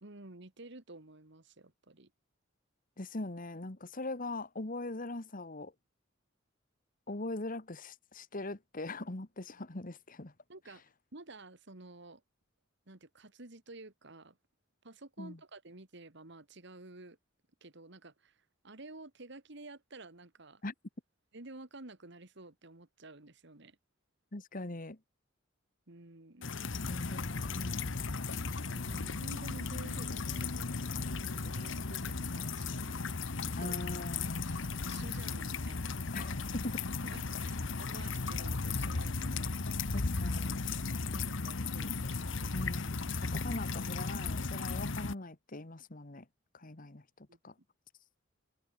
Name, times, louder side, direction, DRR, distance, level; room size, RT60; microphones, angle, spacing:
voice 1, 0.0-2.1 10.5-10.8 11.1-12.2 12.9-14.4 14.8-17.2 17.6-20.6 21.3-23.8 25.9-26.5 28.7-33.0 33.4-33.8 34.5-36.0 37.0-39.9 41.1-42.5 47.3-47.4, right 2 dB, 60° right, 2.1 m, -52 dB
voice 2, 3.0-5.7 7.1-10.3 15.2-15.4 20.6-20.7 24.3-25.0 26.9-28.3 33.6-34.3 36.1-36.8 37.9-38.0 39.9-40.6 42.5-46.2 46.5-47.0 47.4-47.5, left 2 dB, 45° left, 1.6 m, -41 dB
sound 1, 26.4-45.1, left 4 dB, 65° left, 1.1 m, -36 dB
head